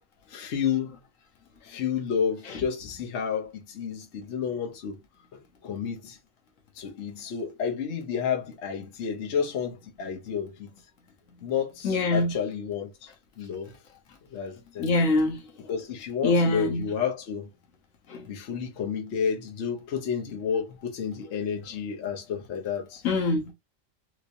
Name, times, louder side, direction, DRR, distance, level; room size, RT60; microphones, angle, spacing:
voice 1, 0.3-1.0 1.6-5.0 5.3-6.2 6.8-10.7 11.4-12.9 13.4-13.7 14.3-14.9 15.7-17.5 18.3-23.0, left 7 dB, 60° left, 1.0 m, -31 dB
voice 2, 11.8-12.3 14.8-15.4 16.2-16.9 18.1-18.2 23.0-23.5, left 2 dB, 80° left, 1.2 m, -23 dB
3.2 x 3.0 x 2.6 m
omnidirectional pair, 1.4 m